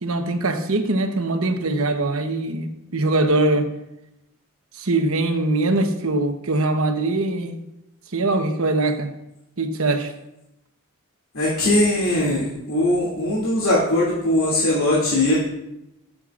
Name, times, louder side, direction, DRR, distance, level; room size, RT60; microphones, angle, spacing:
voice 1, 0.0-3.7 4.8-7.6 8.1-9.1 9.6-10.1, right 2 dB, 80° right, 6 dB, 1.1 m, -22 dB
voice 2, 11.3-15.3, left 1 dB, 85° left, -7 dB, 2.6 m, -20 dB
21.5 x 7.8 x 2.5 m, 0.87 s
head